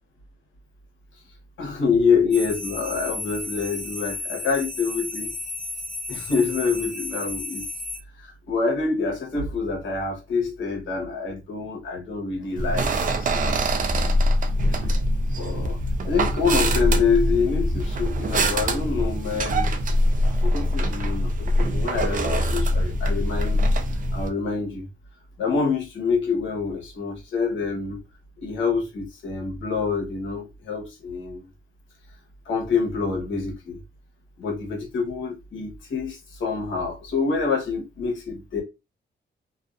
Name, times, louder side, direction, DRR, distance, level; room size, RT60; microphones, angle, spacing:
voice 1, 1.6-5.3 6.1-7.6 8.2-12.9 13.2-13.8 14.6-15.0 15.3-15.8 16.0-19.7 20.2-23.6 24.1-24.9 25.4-28.0 28.4-31.5 32.5-33.8 34.4-38.6, left 5 dB, 90° left, 1.0 m, -26 dB
sound 1, 2.3-8.0, left 2 dB, 40° left, 0.6 m, -33 dB
sound 2, 12.6-24.3, equal, 45° right, 0.4 m, -23 dB
2.4 x 2.3 x 2.3 m
cardioid pair, 120°, 19 cm